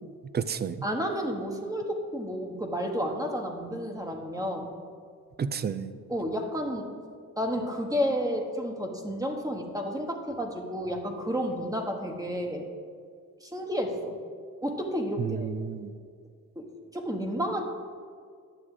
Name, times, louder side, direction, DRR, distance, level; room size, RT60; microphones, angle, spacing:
voice 1, 0.0-0.8 5.4-6.0 15.2-15.9, right 7 dB, 35° right, 12 dB, 0.5 m, -32 dB
voice 2, 0.8-4.7 6.1-6.9 7.4-12.7 13.4-14.2 14.6-15.5 16.6-16.7 16.9-17.6, equal, 10° right, 2 dB, 1.2 m, -31 dB
10.5 x 7.3 x 4.9 m, 2.1 s
cardioid pair, 90°, 30 cm